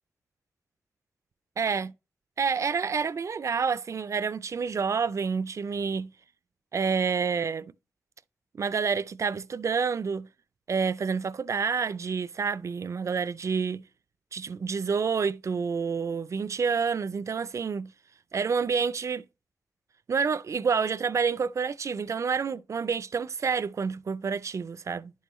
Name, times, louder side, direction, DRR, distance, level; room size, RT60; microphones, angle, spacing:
voice 1, 1.6-1.9 2.4-6.1 6.7-7.7 8.6-10.3 10.7-13.8 14.3-17.9 18.3-19.2 20.1-25.1, right 5 dB, 55° right, 0.4 m, -28 dB
10.5 x 5.5 x 3.0 m
cardioid pair, 65°, 6 cm